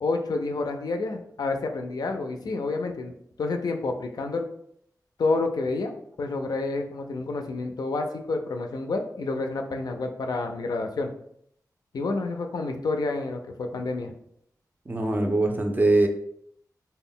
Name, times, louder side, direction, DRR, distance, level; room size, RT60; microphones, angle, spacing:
voice 1, 0.0-4.5 5.2-11.1 11.9-14.1, left 3 dB, 70° left, 4 dB, 0.3 m, -29 dB
voice 2, 14.9-16.1, right 2 dB, 25° right, 3 dB, 0.4 m, -22 dB
2.1 x 2.0 x 3.6 m, 0.69 s
wide cardioid pair, 120°, 7 cm